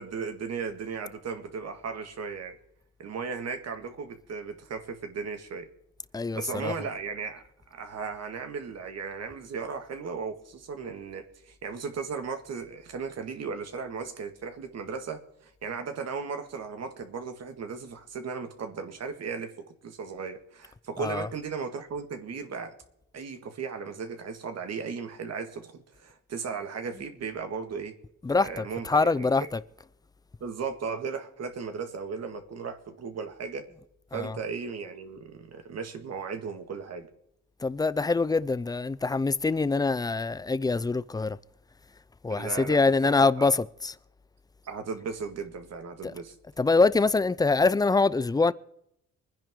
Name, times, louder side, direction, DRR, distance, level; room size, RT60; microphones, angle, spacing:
voice 1, 0.0-2.6 3.0-5.7 6.3-7.4 7.7-19.5 19.8-22.7 23.1-27.9 28.4-29.3 30.4-33.6 34.1-37.1 42.3-43.5 44.6-46.4, right 5 dB, 55° right, 1.9 m, -36 dB
voice 2, 6.1-6.8 21.0-21.3 28.2-29.6 34.1-34.4 37.6-41.4 42.2-44.0 46.0-46.1 46.6-48.5, left 3 dB, 15° left, 0.4 m, -24 dB
23.5 x 10.0 x 3.7 m
cardioid pair, 90°, 30 cm